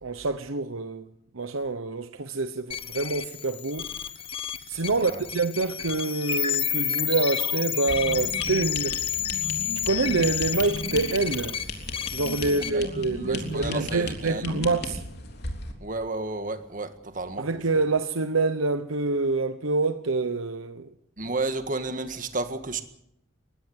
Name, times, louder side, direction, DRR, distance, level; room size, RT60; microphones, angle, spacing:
voice 1, 0.0-3.9 4.7-9.0 9.7-11.6 12.1-15.0 17.4-20.9, right 3 dB, 85° right, 1.0 m, -26 dB
sound 1, 2.7-12.7, left 9 dB, 25° left, 1.1 m, -30 dB
voice 2, 4.9-5.2 12.4-12.9 13.2-14.4 15.8-17.5 21.2-22.8, right 3 dB, 40° right, 1.7 m, -32 dB
sound 2, 7.9-15.7, left 1 dB, 55° left, 3.5 m, -36 dB
20.5 x 16.5 x 8.1 m
head